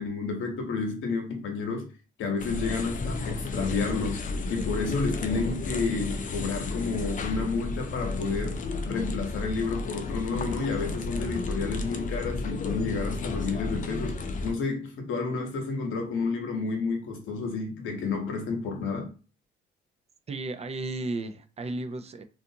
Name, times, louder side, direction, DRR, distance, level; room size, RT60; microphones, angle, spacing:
voice 1, 0.0-1.9 2.2-8.6 8.9-19.1, left 4 dB, 80° left, 0.8 m, -31 dB
wating at airport in belarus, 2.4-14.5, left 3 dB, 40° left, 0.4 m, -32 dB
voice 2, 20.3-22.2, right 2 dB, 30° right, 0.4 m, -34 dB
2.5 x 2.4 x 2.7 m
cardioid pair, 90°, 20 cm